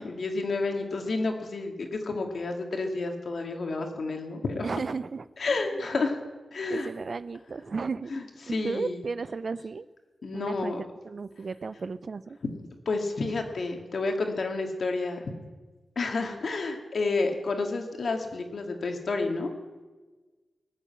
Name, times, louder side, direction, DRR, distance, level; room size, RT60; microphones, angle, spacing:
voice 1, 0.0-4.7 5.4-6.2 6.5-6.9 8.1-9.0 10.2-10.8 12.9-15.3 16.0-19.5, left 3 dB, 65° left, 4 dB, 2.0 m, -30 dB
voice 2, 4.6-5.6 6.7-8.1 8.5-9.9 10.3-10.7 11.0-12.4, right 4 dB, 55° right, 16 dB, 0.5 m, -34 dB
19.0 x 6.9 x 8.5 m, 1.3 s
wide cardioid pair, 110°, 0 cm